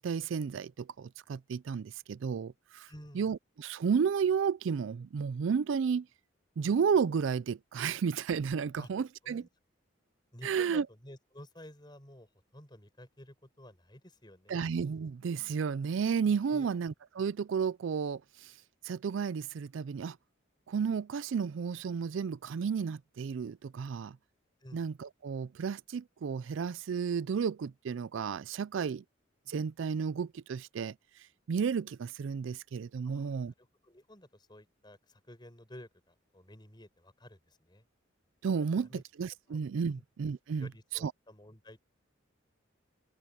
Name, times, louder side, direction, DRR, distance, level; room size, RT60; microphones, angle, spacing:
voice 1, 0.0-2.9 3.1-6.1 6.6-9.4 10.4-10.9 14.5-18.5 18.8-20.2 20.7-24.2 24.7-29.0 29.5-30.9 31.5-33.5 38.4-40.7 41.0-41.1, right 6 dB, 70° right, 0.4 m, -32 dB
voice 2, 2.9-3.3 8.8-8.9 9.2-9.5 10.3-14.7 16.5-16.8 24.6-24.8 33.0-37.8 38.7-39.0 39.5-39.6 40.0-40.1 40.6-41.9, left 1 dB, 20° left, 6.2 m, -52 dB
head